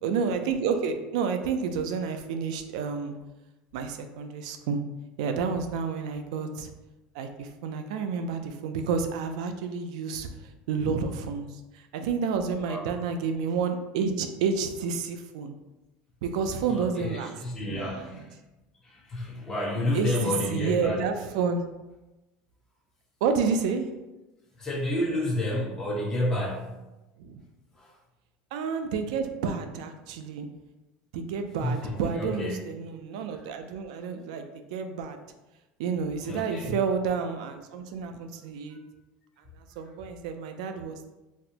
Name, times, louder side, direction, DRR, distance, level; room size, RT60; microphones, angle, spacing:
voice 1, 0.0-3.2 3.7-4.8 5.2-6.7 7.1-10.3 10.7-15.5 16.2-17.3 17.7-18.1 19.9-20.1 20.5-21.6 23.2-23.9 27.2-27.4 28.5-30.5 31.1-35.2 35.8-38.8 39.8-41.1, right 5 dB, 85° right, 7 dB, 0.4 m, -30 dB
voice 2, 16.7-18.2 18.8-21.0 24.6-26.7 27.7-27.9 31.6-32.5 36.2-36.8 38.7-38.8, left 1 dB, 15° left, -5 dB, 1.0 m, -30 dB
4.1 x 2.1 x 2.8 m, 1.0 s
cardioid pair, 145°, 4 cm